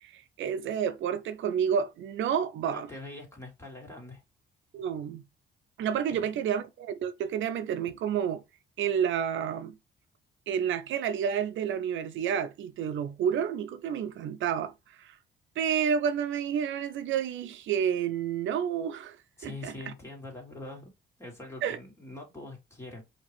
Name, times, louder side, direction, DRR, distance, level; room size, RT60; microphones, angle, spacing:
voice 1, 0.0-2.9 4.7-5.2 5.8-8.4 8.8-9.7 10.5-15.2 15.6-19.2 19.4-19.9 21.6-21.8, right 8 dB, 75° right, 0.5 m, -30 dB
voice 2, 2.6-4.2 6.1-6.4 19.4-20.9 21.2-23.0, left 2 dB, 15° left, 2.5 m, -43 dB
5.0 x 2.9 x 3.4 m
cardioid pair, 90°, 20 cm